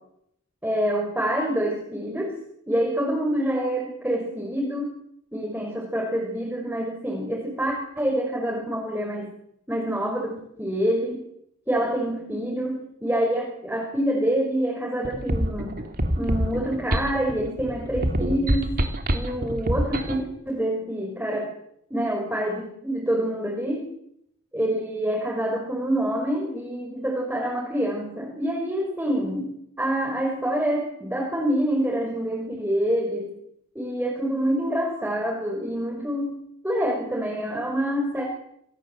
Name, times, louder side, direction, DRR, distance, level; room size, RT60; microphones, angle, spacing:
voice 1, 0.6-2.4 2.7-4.9 5.3-9.3 9.7-11.2 11.7-15.7 16.2-18.8 19.1-21.5 21.9-23.9 24.5-33.3 33.7-36.4 36.6-38.2, right 1 dB, 10° right, -1 dB, 5.7 m, -26 dB
sound 1, 15.0-20.3, equal, 40° right, 3.1 m, -26 dB
28.0 x 21.0 x 8.0 m, 0.76 s
head